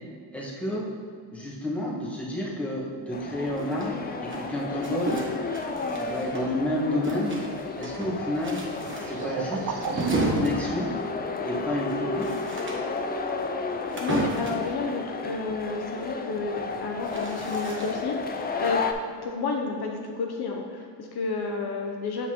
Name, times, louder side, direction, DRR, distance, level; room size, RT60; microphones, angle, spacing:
voice 1, 0.3-0.8 1.3-5.2 6.0-7.4 7.8-8.6 9.0-10.9 11.4-12.3, left 1 dB, 5° left, -6 dB, 1.5 m, -30 dB
sound 1, 3.1-18.9, left 4 dB, 25° left, 0.3 m, -33 dB
sound 2, 3.3-4.3 7.7-10.7, right 6 dB, 45° right, 0.5 m, -37 dB
sound 3, 3.6-6.7 7.0-14.7 16.6-18.2, right 2 dB, 25° right, 1.2 m, -33 dB
voice 2, 14.0-18.8 19.2-22.3, left 4 dB, 60° left, 1 dB, 0.7 m, -31 dB
7.0 x 5.8 x 3.0 m, 2.2 s
cardioid pair, 90°, 44 cm